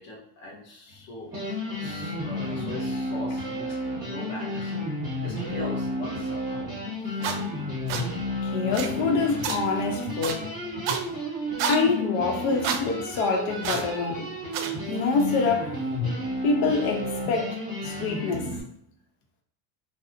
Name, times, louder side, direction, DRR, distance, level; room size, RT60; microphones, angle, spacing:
voice 1, 0.0-6.7, left 1 dB, 25° left, 0.4 m, -41 dB
sound 1, 0.9-1.0 1.3-18.6, left 1 dB, 10° right, 0.8 m, -32 dB
sound 2, 7.2-7.4 7.9-8.0 8.7-8.9 9.4-9.6 10.2-10.3 10.9-11.0 11.6-11.8 12.6-12.8 13.6-13.9 14.5-14.7, right 6 dB, 90° right, 0.6 m, -28 dB
voice 2, 8.4-10.5 11.7-14.3 14.9-15.7 16.4-18.5, left 4 dB, 85° left, 0.8 m, -26 dB
2.6 x 2.0 x 2.4 m
cardioid pair, 180°, 49 cm